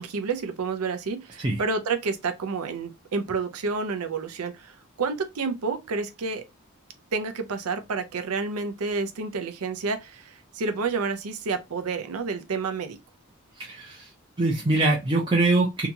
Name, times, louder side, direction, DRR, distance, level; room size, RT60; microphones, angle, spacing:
voice 1, 0.0-6.4 7.1-13.0, right 4 dB, 85° right, 0.5 m, -29 dB
voice 2, 13.6-14.1 14.4-15.9, right 2 dB, 20° right, 0.5 m, -23 dB
2.8 x 2.3 x 2.7 m
head